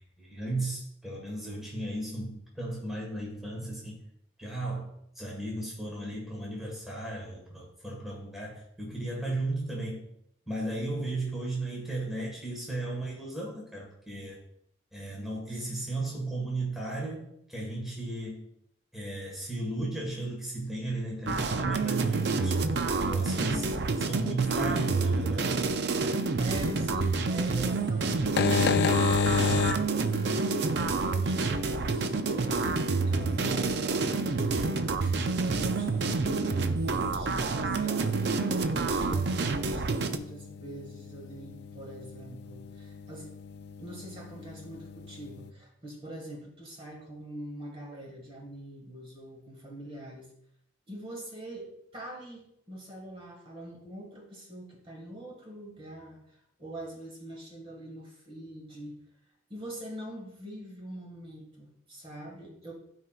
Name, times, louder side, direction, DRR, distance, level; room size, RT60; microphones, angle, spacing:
voice 1, 0.0-4.0 4.4-4.9 5.1-10.0 10.5-14.4 14.9-18.4 18.9-22.6 23.1-23.8 24.1-25.5, right 2 dB, ahead, -4 dB, 1.5 m, -35 dB
sound 1, 21.3-40.2, right 3 dB, 60° right, 0.5 m, -28 dB
voice 2, 26.4-30.2 31.1-43.3 43.8-50.3 50.9-59.0 59.5-62.7, right 1 dB, 30° right, -1 dB, 1.8 m, -44 dB
sound 2, 28.2-45.5, left 4 dB, 60° left, 0.4 m, -34 dB
12.5 x 4.4 x 2.4 m, 0.74 s
head